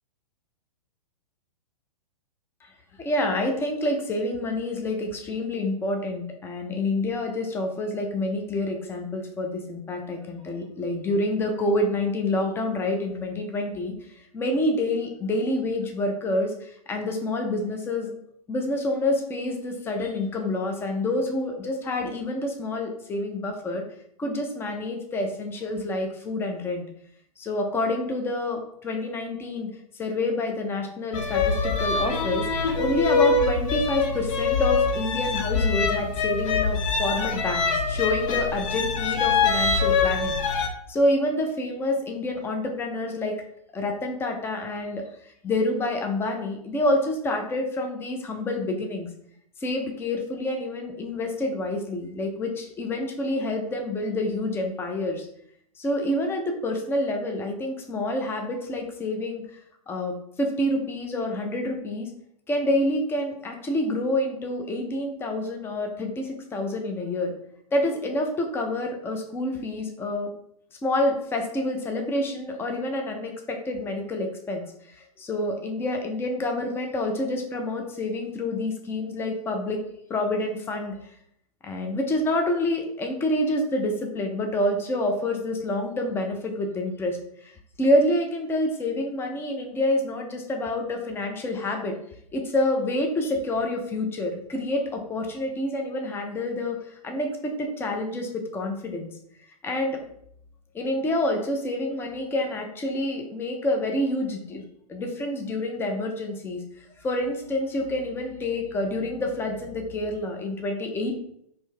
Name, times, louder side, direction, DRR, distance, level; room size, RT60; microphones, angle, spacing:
voice 1, 3.0-13.9 14.3-18.1 18.5-23.8 24.2-26.9 27.4-29.7 30.0-40.4 40.9-43.3 43.7-45.0 45.4-49.1 49.6-55.3 55.8-59.4 59.9-62.1 62.5-67.3 67.7-70.3 70.8-79.8 80.1-80.9 81.6-92.0 92.3-99.1 99.6-100.0 100.7-104.6 104.9-106.6 107.0-111.2, left 1 dB, 10° left, 3 dB, 0.6 m, -27 dB
sound 1, 31.1-40.7, left 4 dB, 55° left, 0.7 m, -24 dB
4.4 x 2.7 x 3.3 m, 0.70 s
hypercardioid pair, 115°, 20 cm